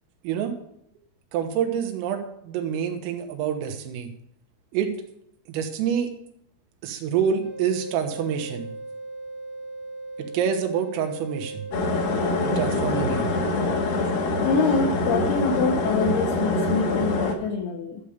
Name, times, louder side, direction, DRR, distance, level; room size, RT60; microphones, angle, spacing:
voice 1, 1.3-4.1 4.7-4.9 5.5-6.1 6.8-8.7 10.2-11.6 12.4-13.3, right 8 dB, 90° right, 5 dB, 3.9 m, -27 dB
sound 1, 7.4-12.7, right 2 dB, 45° left, 1.0 m, -38 dB
kettle boiling, 11.7-17.3, left 2 dB, 65° left, 2.6 m, -24 dB
voice 2, 13.5-13.9 14.4-18.1, left 4 dB, 80° left, 3 dB, 2.2 m, -26 dB
13.0 x 7.2 x 5.1 m, 0.74 s
omnidirectional pair, 5.8 m